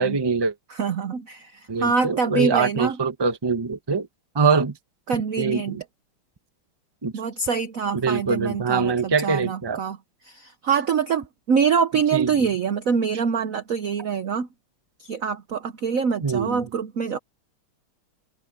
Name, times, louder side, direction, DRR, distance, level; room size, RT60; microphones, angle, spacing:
voice 1, 0.0-0.5 1.7-4.1 4.3-4.8 5.4-5.8 7.0-7.1 7.9-9.8 12.1-12.5 16.2-16.6, right 5 dB, 15° right, 0.8 m, -23 dB
voice 2, 0.7-3.0 5.1-5.8 7.1-10.0 10.2-14.5 15.0-17.2, right 6 dB, 60° right, 0.9 m, -25 dB
omnidirectional pair, 2.4 m